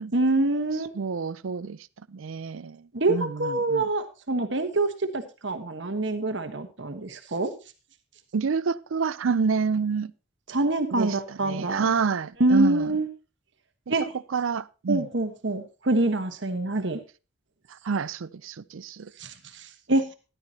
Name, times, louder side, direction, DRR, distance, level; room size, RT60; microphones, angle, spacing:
voice 1, 0.1-0.9 2.9-7.5 10.5-11.9 12.4-13.1 13.9-14.0 14.9-17.0 19.2-20.1, right 2 dB, 60° right, 1.2 m, -25 dB
voice 2, 0.9-1.8 2.1-3.8 8.3-10.1 10.9-12.9 14.3-15.1 17.8-19.1, right 5 dB, 75° right, 0.5 m, -28 dB
14.0 x 11.5 x 2.8 m
head